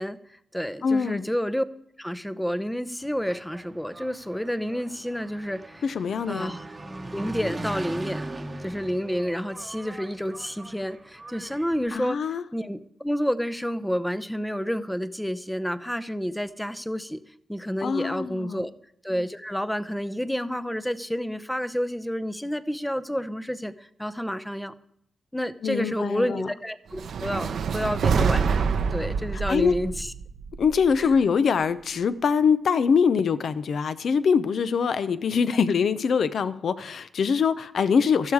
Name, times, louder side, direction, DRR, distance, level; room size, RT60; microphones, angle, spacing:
voice 1, 0.0-1.6 2.0-5.9 6.3-6.7 7.1-8.3 8.6-18.7 19.0-24.7 25.3-30.1 31.0-31.1, equal, 5° left, 0.7 m, -30 dB
voice 2, 0.8-1.2 5.8-6.5 11.9-12.4 17.8-18.6 25.6-26.5 29.5-29.7 30.6-38.3, left 6 dB, 65° left, 0.8 m, -23 dB
Engine, 3.0-11.9, right 2 dB, 20° right, 1.0 m, -40 dB
sound 1, 26.9-31.2, right 6 dB, 70° right, 0.7 m, -26 dB
14.0 x 12.0 x 4.8 m
wide cardioid pair, 130°, 0 cm